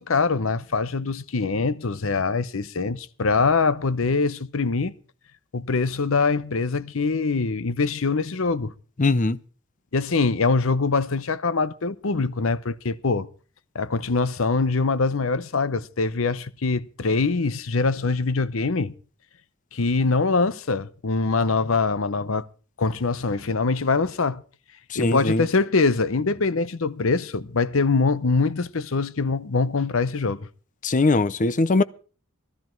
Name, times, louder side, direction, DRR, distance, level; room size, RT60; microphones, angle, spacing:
voice 1, 0.0-4.9 5.5-8.7 9.9-13.3 13.7-18.9 19.7-22.4 22.8-24.4 24.9-30.4, left 4 dB, 65° left, 0.8 m, -23 dB
voice 2, 9.0-9.4 24.9-25.4 30.8-31.8, left 3 dB, 35° left, 0.6 m, -20 dB
18.0 x 13.0 x 4.6 m
head